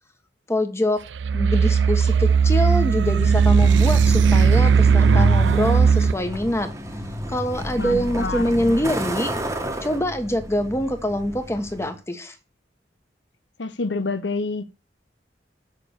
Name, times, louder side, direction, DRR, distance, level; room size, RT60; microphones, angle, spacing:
voice 1, 0.5-1.0 1.3-6.7 7.3-9.3 9.8-12.3, left 1 dB, 15° left, 1.3 m, -24 dB
sound 1, 1.2-6.1, right 6 dB, 85° right, 0.4 m, -17 dB
Truck, 3.2-11.9, equal, 15° right, 1.4 m, -29 dB
voice 2, 7.8-8.5 13.6-14.7, left 3 dB, 85° left, 0.9 m, -27 dB
6.8 x 6.5 x 6.6 m
head